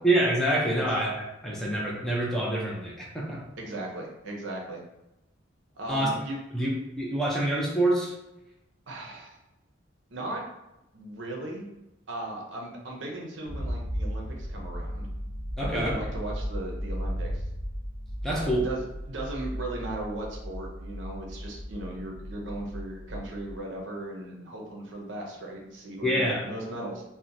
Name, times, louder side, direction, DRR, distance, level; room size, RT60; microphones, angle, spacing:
voice 1, 0.0-3.4 5.9-6.1 6.5-6.7 7.0-8.1 15.6-16.0 18.2-18.6 26.0-26.4, right 1 dB, ahead, -4 dB, 0.4 m, -26 dB
voice 2, 3.6-4.8 5.8-6.4 8.9-9.4 10.1-10.4 10.9-11.7 12.1-15.1 15.6-17.5 18.3-18.8 19.1-27.0, right 2 dB, 65° right, -1 dB, 0.6 m, -37 dB
sound 1, 13.5-23.6, equal, 50° left, 0.9 m, -35 dB
2.8 x 2.1 x 2.5 m, 0.93 s
head